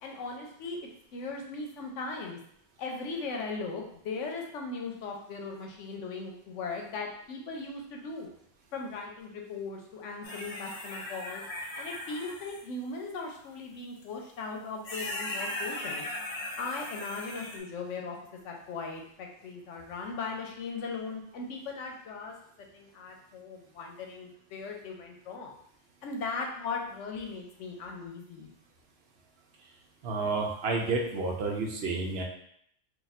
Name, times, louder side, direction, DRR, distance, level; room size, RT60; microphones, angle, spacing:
voice 1, 0.0-0.8 1.1-2.4 2.8-8.3 8.7-11.4 11.8-16.0 16.6-18.2 18.4-22.3 22.7-25.5 26.0-28.5, left 4 dB, 80° left, 1 dB, 1.0 m, -38 dB
sound 1, 10.2-12.6 14.0-14.1 14.8-17.6, left 1 dB, 45° left, 0.5 m, -38 dB
voice 2, 30.0-32.2, right 3 dB, 60° right, 1 dB, 0.8 m, -30 dB
2.6 x 2.5 x 4.1 m, 0.70 s
omnidirectional pair, 1.3 m